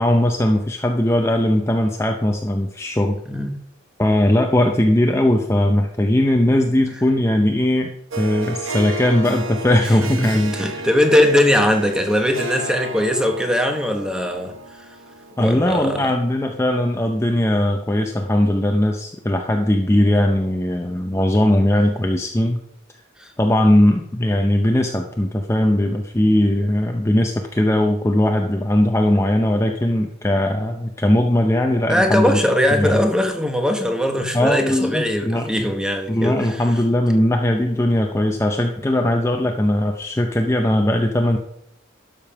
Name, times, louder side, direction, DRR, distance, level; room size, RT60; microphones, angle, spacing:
voice 1, 0.0-3.2 4.0-10.9 15.4-22.6 23.4-32.4 32.7-33.0 34.3-35.5 36.1-41.4, left 1 dB, 15° left, 0.6 m, -19 dB
Harp, 8.1-15.6, right 1 dB, 85° right, 1.2 m, -32 dB
voice 2, 10.2-14.6 15.4-16.1 23.2-23.3 31.9-36.6, left 1 dB, 5° right, 0.9 m, -20 dB
12.0 x 5.2 x 5.8 m
head